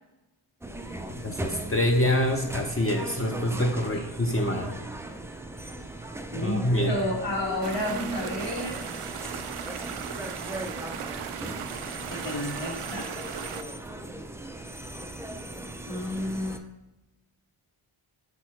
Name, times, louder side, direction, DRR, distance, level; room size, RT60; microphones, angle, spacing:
sound 1, 0.6-16.6, right 1 dB, 5° right, 0.3 m, -38 dB
voice 1, 1.2-4.8 6.4-7.0, left 1 dB, 30° left, 1 dB, 0.6 m, -26 dB
voice 2, 6.3-8.8 11.7-13.1 15.9-16.6, left 1 dB, 55° left, -3 dB, 2.1 m, -31 dB
sound 2, 7.6-13.6, right 8 dB, 90° right, 0.6 m, -37 dB
8.1 x 4.1 x 3.1 m, 0.98 s
wide cardioid pair, 85°, 49 cm